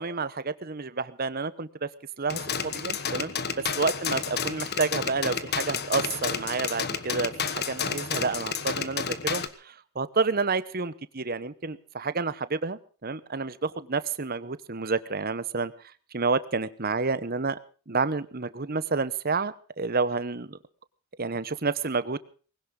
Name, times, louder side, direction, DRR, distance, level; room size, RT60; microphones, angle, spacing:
voice 1, 0.0-1.9 2.2-3.3 3.8-15.7 16.1-17.6 17.9-20.6 21.2-22.2, right 4 dB, 45° right, 15 dB, 1.0 m, -29 dB
sound 1, 2.3-9.5, left 6 dB, 45° left, 1.3 m, -31 dB
20.5 x 17.5 x 3.8 m, 0.39 s
head